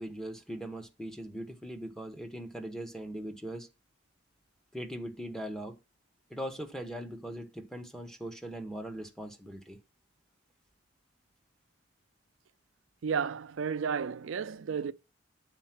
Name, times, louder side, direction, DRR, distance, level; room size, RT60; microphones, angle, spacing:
voice 1, 0.0-3.7 4.7-5.7 6.3-9.8, right 1 dB, 5° left, 1.0 m, -40 dB
voice 2, 13.0-14.9, right 6 dB, 80° right, 0.4 m, -32 dB
8.9 x 4.3 x 5.9 m
head